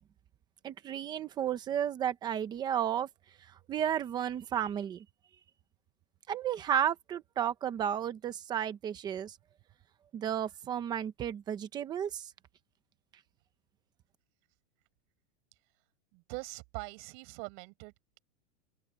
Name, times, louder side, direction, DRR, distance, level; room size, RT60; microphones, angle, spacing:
voice 1, 0.6-3.1 3.7-5.0 6.3-9.4 10.1-12.3, right 9 dB, 10° right, 0.7 m, -33 dB
voice 2, 16.1-18.2, right 33 dB, 35° right, 5.2 m, -43 dB
supercardioid pair, 175°, 37 cm